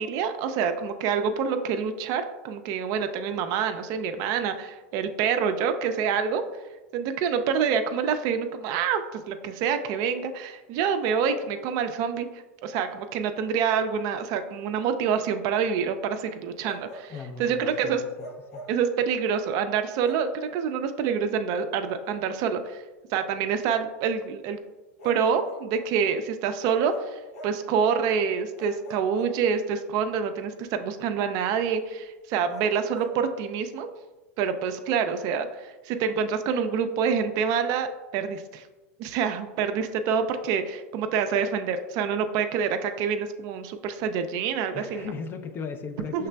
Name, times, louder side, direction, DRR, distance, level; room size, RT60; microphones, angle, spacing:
voice 1, 0.0-6.4 6.9-12.3 12.6-17.1 17.4-18.1 18.7-22.8 23.1-24.6 25.0-33.9 34.4-38.6 39.0-45.1 46.1-46.3, right 6 dB, 50° right, 8 dB, 0.4 m, -27 dB
Bark, 16.6-17.4 18.2-18.9 20.0-20.4 22.0-22.2 25.0-26.0 26.6-27.7 28.5-29.8 32.5-33.2, equal, 85° left, 0.8 m, -44 dB
voice 2, 17.1-18.3 18.5-18.7 44.7-46.3, left 5 dB, 30° left, 7 dB, 0.4 m, -37 dB
5.6 x 3.2 x 2.2 m, 1.1 s
hypercardioid pair, 110°, 8 cm